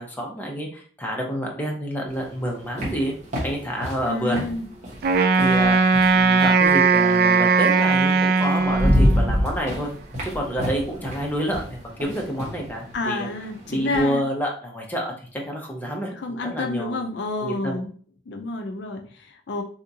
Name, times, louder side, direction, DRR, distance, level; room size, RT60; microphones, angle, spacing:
voice 1, 0.0-3.1 3.4-4.5 5.3-9.9 10.2-13.3 13.7-17.0 17.4-17.8, equal, 10° left, -1 dB, 0.8 m, -28 dB
sound 1, 2.1-6.7 7.9-8.0 8.4-14.1, equal, 40° right, 1.2 m, -27 dB
voice 2, 4.0-4.7 12.9-14.2 16.2-17.9 18.3-19.6, left 2 dB, 70° left, 4 dB, 0.5 m, -29 dB
Wind instrument woodwind instrument, 5.0-9.4, right 4 dB, 55° right, 0.3 m, -18 dB
3.5 x 2.7 x 2.7 m, 0.43 s
head